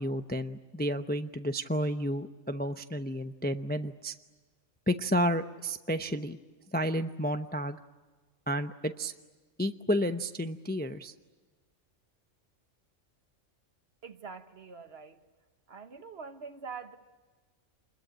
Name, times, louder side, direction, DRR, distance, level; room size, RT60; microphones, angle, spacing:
voice 1, 0.0-4.1 4.9-6.4 6.7-7.8 8.5-9.1 9.6-11.1, equal, 10° left, 8 dB, 0.5 m, -31 dB
voice 2, 14.0-15.2 15.7-17.0, right 5 dB, 55° right, 9 dB, 1.4 m, -44 dB
27.5 x 21.5 x 9.1 m, 1.3 s
omnidirectional pair, 1.3 m